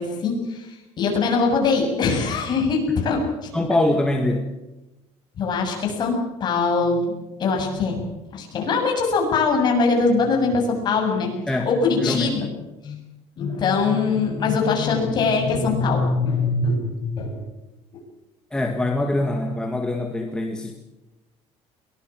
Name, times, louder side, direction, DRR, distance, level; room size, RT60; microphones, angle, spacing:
voice 1, 0.0-3.5 5.4-7.1 7.4-8.0 8.3-11.3 11.7-12.5 12.8-13.0 13.4-17.4, left 4 dB, 40° left, 2 dB, 7.4 m, -22 dB
voice 2, 3.5-4.5 11.5-11.7 12.0-12.3 18.5-20.7, left 1 dB, 5° left, 3 dB, 1.8 m, -23 dB
22.5 x 20.5 x 7.5 m, 1.0 s
cardioid pair, 160°, 12 cm